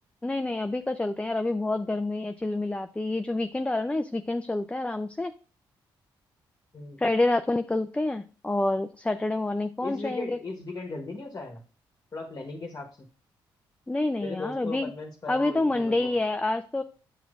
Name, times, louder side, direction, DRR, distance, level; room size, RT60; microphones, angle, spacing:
voice 1, 0.2-5.3 7.0-10.4 13.9-14.9 15.3-16.8, left 2 dB, 10° left, 9 dB, 0.4 m, -28 dB
voice 2, 9.8-11.6 12.1-13.1 14.2-16.1, left 3 dB, 35° left, 3 dB, 1.1 m, -37 dB
8.0 x 6.0 x 2.5 m, 0.39 s
supercardioid pair, 55°, 10 cm